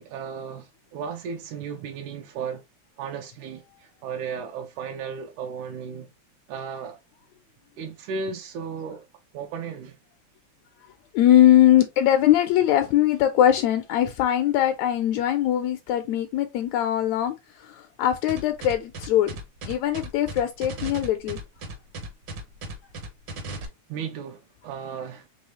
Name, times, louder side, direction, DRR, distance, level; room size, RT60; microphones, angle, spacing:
voice 1, 0.0-2.6 3.0-6.1 6.5-7.0 7.8-9.0 9.3-10.0 21.6-21.7 23.9-25.3, right 6 dB, 80° right, 2.0 m, -35 dB
voice 2, 11.1-19.3 19.7-21.4, left 12 dB, 80° left, 1.7 m, -21 dB
sound 1, 18.3-23.6, right 2 dB, 65° right, 1.3 m, -36 dB
5.4 x 3.0 x 3.0 m
omnidirectional pair, 3.5 m